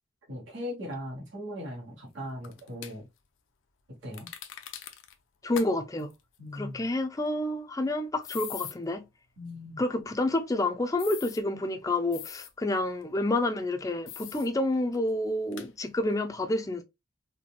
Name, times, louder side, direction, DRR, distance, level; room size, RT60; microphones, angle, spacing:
voice 1, 0.3-3.1 4.0-4.3 6.4-6.8 9.4-9.8, left 1 dB, 80° right, 1.4 m, -39 dB
sound 1, 2.4-2.9 4.1-5.1 5.5-5.7 6.0-6.1 8.2-8.7 11.0-11.4 12.1-12.5 14.1-14.5 14.9-15.0 15.5-15.7, left 10 dB, 85° left, 0.5 m, -41 dB
voice 2, 5.4-6.1 6.5-9.0 9.8-16.8, left 2 dB, 15° left, 0.4 m, -29 dB
4.0 x 2.2 x 2.3 m
head